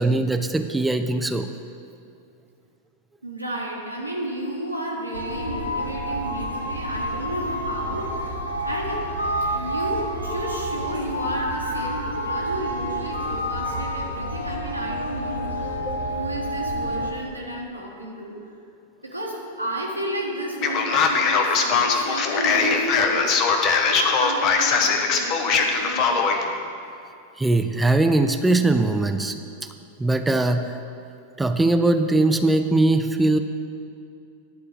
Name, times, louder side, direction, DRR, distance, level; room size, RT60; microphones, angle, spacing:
voice 1, 0.0-1.5 15.9-16.0 27.4-29.4 30.0-30.8 31.4-33.4, right 2 dB, 5° right, 7 dB, 0.4 m, -21 dB
voice 2, 3.2-9.0 9.5-15.8 16.1-18.3 19.0-26.5, right 1 dB, 90° right, -3 dB, 1.5 m, -32 dB
sound 1, 5.1-17.1, equal, 85° left, 1.1 m, -29 dB
Male speech man speaking, 20.6-26.4, left 5 dB, 40° left, 0.9 m, -21 dB
11.0 x 4.6 x 8.1 m, 2.5 s
figure-of-eight pair, 90°, 0 cm